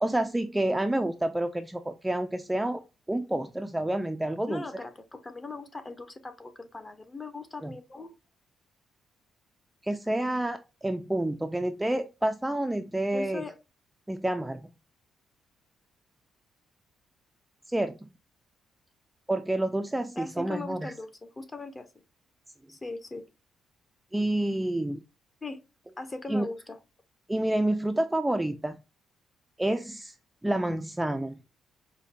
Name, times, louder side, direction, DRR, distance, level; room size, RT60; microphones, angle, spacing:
voice 1, 0.0-2.8 3.1-4.6 7.6-7.7 9.8-13.4 14.1-14.7 17.7-18.1 19.3-20.9 24.1-25.0 26.3-26.5 27.3-28.8 29.6-30.1 30.4-31.4, right 1 dB, 10° right, 0.3 m, -29 dB
voice 2, 4.5-8.2 13.1-13.5 20.2-22.0 22.7-23.2 25.4-25.6 26.0-26.8, left 3 dB, 25° left, 0.7 m, -39 dB
5.0 x 2.2 x 2.4 m
cardioid pair, 90°, 0 cm